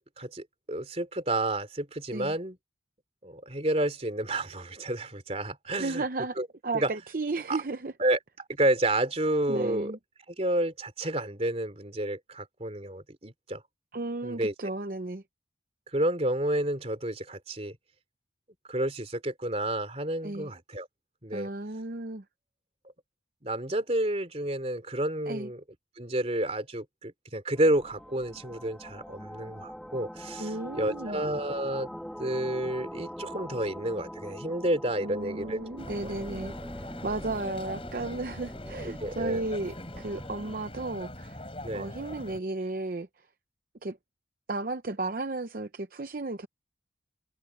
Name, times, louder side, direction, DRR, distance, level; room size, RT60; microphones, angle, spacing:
voice 1, 0.2-2.6 3.2-6.0 6.4-6.5 6.7-6.9 7.5-7.6 8.0-8.2 8.5-9.9 10.4-13.6 14.2-14.5 15.9-17.8 18.7-20.9 21.2-21.5 23.4-25.6 26.0-31.9 32.2-35.6 38.8-39.4 41.6-41.9, right 1 dB, 35° right, 3.3 m, -30 dB
voice 2, 5.8-7.9 9.5-10.0 13.9-15.2 20.2-20.5 21.3-22.2 25.3-25.5 30.4-31.2 35.0-41.4 41.7-43.1 43.8-44.0 44.5-46.5, right 2 dB, 50° right, 0.7 m, -34 dB
sound 1, 27.5-40.7, equal, ahead, 2.1 m, -43 dB
sound 2, 35.8-42.4, left 1 dB, 30° left, 6.6 m, -42 dB
head